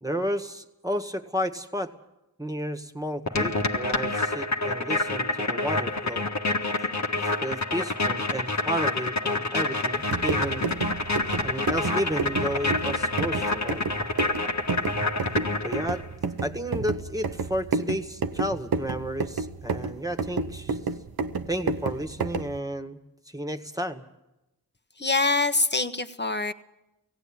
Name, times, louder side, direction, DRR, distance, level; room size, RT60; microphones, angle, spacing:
voice 1, 0.0-1.9 2.4-6.3 7.2-10.7 11.4-13.9 15.6-16.0 16.4-20.8 21.5-23.0 23.3-24.0, equal, 10° right, 7 dB, 1.8 m, -32 dB
sound 1, 3.3-16.1, left 2 dB, 45° left, 1.6 m, -28 dB
sound 2, 10.0-22.6, right 4 dB, 70° right, 1.0 m, -31 dB
voice 2, 25.0-26.5, left 3 dB, 30° left, 8 dB, 1.3 m, -24 dB
17.5 x 17.0 x 8.9 m, 0.91 s
cardioid pair, 45°, 38 cm